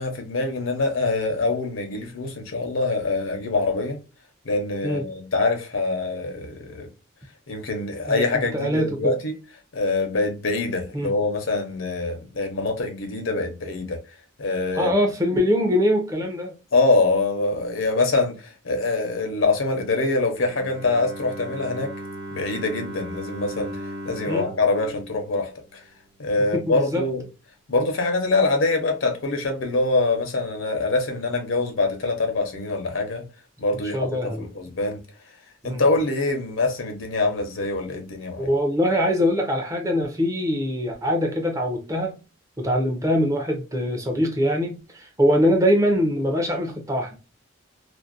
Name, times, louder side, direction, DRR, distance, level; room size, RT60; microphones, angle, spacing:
voice 1, 0.0-4.0 4.4-6.9 7.5-9.3 9.7-14.0 14.4-14.9 16.7-21.9 22.3-25.8 26.2-27.2 27.7-33.2 33.6-35.0 35.6-38.5, left 3 dB, 80° left, 0.7 m, -24 dB
voice 2, 8.1-9.1 10.9-11.1 14.7-16.5 24.3-24.5 26.5-27.0 33.9-34.5 35.6-35.8 38.4-42.2 42.6-47.2, equal, 15° right, 0.5 m, -23 dB
Bowed string instrument, 20.3-26.3, right 1 dB, 60° right, 0.8 m, -37 dB
2.5 x 2.1 x 2.4 m
head